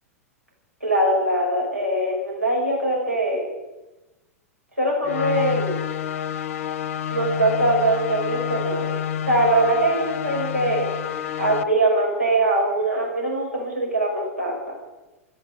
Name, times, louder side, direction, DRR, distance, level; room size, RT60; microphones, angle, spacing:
voice 1, 0.8-3.4 4.8-5.7 7.1-8.9 9.2-10.9 11.4-14.7, right 1 dB, 90° right, -3 dB, 5.7 m, -22 dB
sound 1, 5.0-11.6, left 9 dB, 55° left, 0.9 m, -28 dB
13.5 x 10.0 x 9.1 m, 1.1 s
figure-of-eight pair, 95°, 8 cm